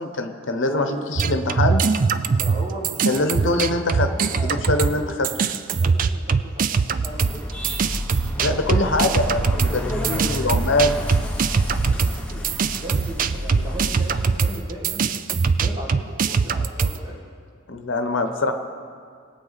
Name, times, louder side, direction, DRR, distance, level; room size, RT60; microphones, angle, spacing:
voice 1, 0.0-1.8 3.1-5.3 8.4-11.0 17.7-18.5, left 2 dB, 70° left, 6 dB, 0.9 m, -23 dB
voice 2, 0.6-1.1 2.3-3.5 3.9-5.1 5.8-7.5 8.3-9.2 9.5-10.8 11.2-11.4 11.9-17.2, right 1 dB, 20° right, -3 dB, 1.8 m, -36 dB
sound 1, 1.2-5.0 5.2-17.0, right 5 dB, 40° right, 0.4 m, -22 dB
sound 2, 7.1-14.6, left 1 dB, 5° left, 1.0 m, -30 dB
20.5 x 8.2 x 4.1 m, 2.1 s
head